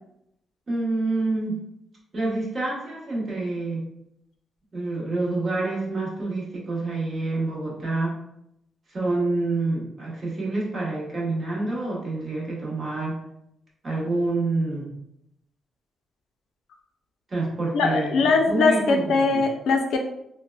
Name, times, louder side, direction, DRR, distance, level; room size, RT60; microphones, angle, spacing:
voice 1, 0.7-1.5 2.1-3.8 4.7-8.1 8.9-13.2 13.8-14.9 17.3-19.4, right 2 dB, 30° right, -4 dB, 0.9 m, -27 dB
voice 2, 17.7-20.0, left 4 dB, 85° left, 3 dB, 0.4 m, -21 dB
4.0 x 2.1 x 2.2 m, 0.80 s
wide cardioid pair, 165°, 0 cm